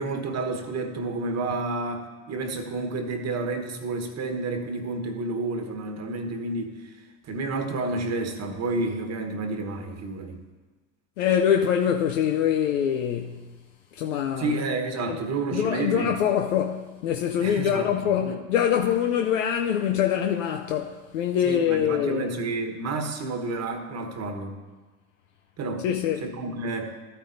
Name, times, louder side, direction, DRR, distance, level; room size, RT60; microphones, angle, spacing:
voice 1, 0.0-6.9 7.2-10.4 14.4-16.2 17.4-18.4 21.4-24.6 25.6-25.9 26.2-26.9, right 3 dB, 45° right, 1.3 m, -30 dB
voice 2, 11.2-13.5 13.9-14.6 15.1-15.2 15.5-22.4 25.8-26.3, left 9 dB, 85° left, 0.6 m, -24 dB
13.0 x 9.0 x 2.6 m
hypercardioid pair, 75°, 38 cm